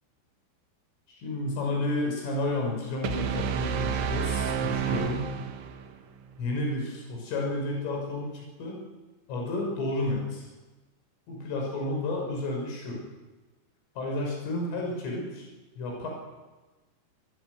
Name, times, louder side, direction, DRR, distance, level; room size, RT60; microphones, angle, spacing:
voice 1, 1.1-5.3 6.4-8.8 9.3-10.5 11.3-13.0 14.0-15.5 15.8-16.1, left 2 dB, 85° left, 0 dB, 9.0 m, -31 dB
sound 1, 3.0-6.0, right 7 dB, 70° right, 3.9 m, -30 dB
28.5 x 21.5 x 8.3 m, 1.2 s
omnidirectional pair, 5.6 m